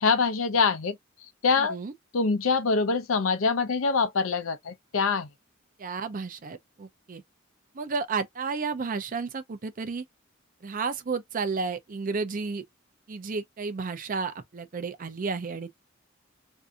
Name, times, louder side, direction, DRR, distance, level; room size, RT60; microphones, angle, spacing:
voice 1, 0.0-1.0 1.4-1.8 2.1-5.3, left 4 dB, 80° left, 0.6 m, -24 dB
voice 2, 1.6-1.9 5.8-7.2 7.7-10.0 10.6-12.6 13.1-15.7, right 4 dB, 40° right, 0.5 m, -32 dB
2.6 x 2.6 x 2.3 m
head